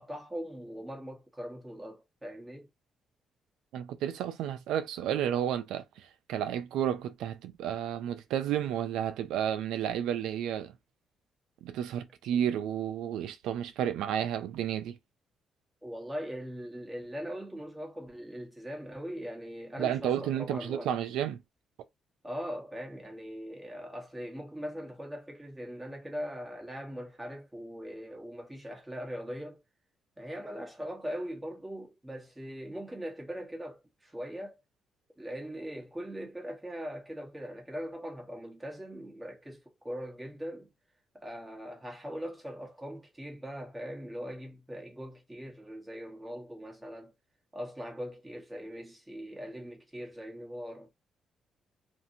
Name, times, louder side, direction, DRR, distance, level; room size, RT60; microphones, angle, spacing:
voice 1, 0.0-2.7 15.8-21.0 22.2-29.6 30.2-34.6 35.2-40.7 41.1-47.1 47.5-50.9, equal, 10° right, 1.1 m, -41 dB
voice 2, 3.7-10.7 11.6-15.0 19.8-21.4, right 10 dB, 90° right, 0.3 m, -32 dB
2.7 x 2.5 x 2.6 m
cardioid pair, 90°, 0 cm